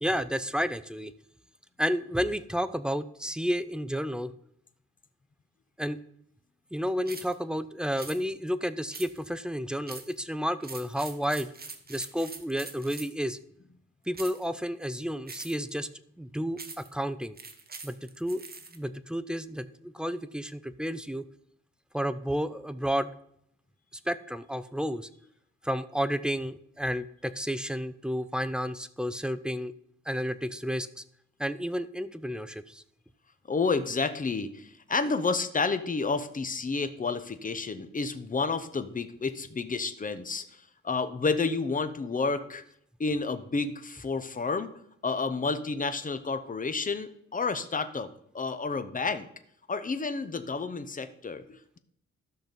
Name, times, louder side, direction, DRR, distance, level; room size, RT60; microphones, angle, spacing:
voice 1, 0.0-1.1 1.8-4.3 5.8-6.0 6.7-11.5 11.9-13.4 14.1-15.9 16.2-17.4 17.8-18.4 18.7-21.2 21.9-23.1 24.1-25.1 25.6-29.7 30.1-31.0 31.4-32.8, equal, 5° right, 13 dB, 0.5 m, -31 dB
sound 1, 7.1-7.3 8.0-8.2 8.9-9.3 9.9-10.1 10.6-13.2 14.1-14.5 15.3-15.7 16.6-16.9 17.4-18.8, right 4 dB, 30° right, 1.2 m, -43 dB
voice 2, 33.5-42.6 43.0-48.1 48.3-49.3 49.7-51.8, left 4 dB, 30° left, 10 dB, 0.9 m, -30 dB
13.5 x 6.0 x 5.3 m, 0.72 s
wide cardioid pair, 115°, 29 cm